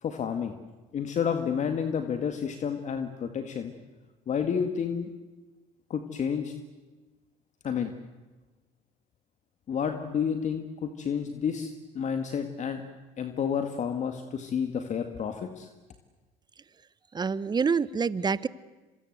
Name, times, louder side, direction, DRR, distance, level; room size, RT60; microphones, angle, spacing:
voice 1, 0.0-0.6 0.9-3.7 4.3-5.1 5.9-6.5 7.6-7.9 9.7-12.8 13.2-15.7, left 7 dB, 45° left, 7 dB, 2.0 m, -30 dB
voice 2, 17.1-18.5, right 5 dB, 25° right, 18 dB, 1.0 m, -26 dB
26.0 x 24.0 x 8.0 m, 1.2 s
supercardioid pair, 85°, 16 cm